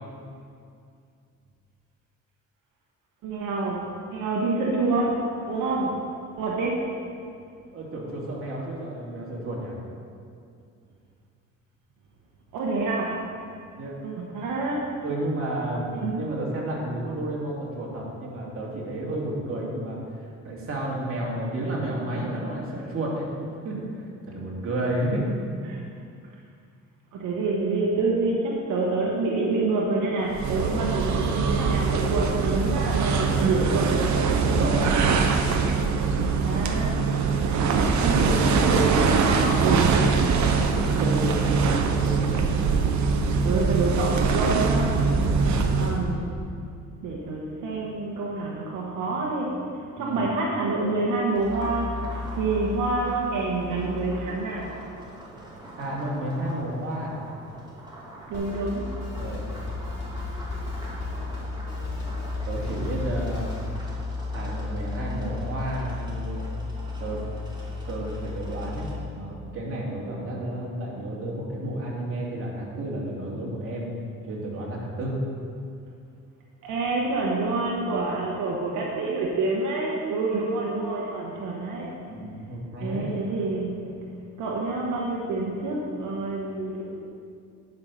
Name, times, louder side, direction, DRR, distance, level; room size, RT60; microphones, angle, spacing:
voice 1, 3.2-6.0 6.4-6.7 12.5-13.2 14.0-15.0 15.9-16.3 25.7-25.8 27.1-34.3 36.2-37.0 37.5-37.6 38.0-40.1 43.4-45.0 45.8-46.3 47.0-49.7 49.9-52.0 52.4-54.8 58.3-58.9 76.6-81.9 82.8-84.0 84.4-87.0, right 3 dB, 90° right, -3 dB, 1.2 m, -27 dB
voice 2, 7.7-9.8 13.7-14.0 15.0-20.0 20.4-23.8 24.3-25.2 34.4-34.9 38.0-38.4 40.9-42.5 45.4-45.7 49.9-50.2 55.8-57.2 59.1-59.5 62.4-63.5 64.3-66.4 67.0-67.2 67.9-73.9 74.3-75.2 82.1-83.2, right 1 dB, 45° right, -4 dB, 2.6 m, -31 dB
sound 1, 30.3-46.1, right 5 dB, 70° right, 0.9 m, -23 dB
sound 2, 51.3-69.0, left 3 dB, 15° right, 2.6 m, -35 dB
Drum kit, 58.3-63.7, left 2 dB, 55° left, 2.6 m, -40 dB
10.5 x 5.6 x 5.7 m, 2.4 s
cardioid pair, 90°, 30 cm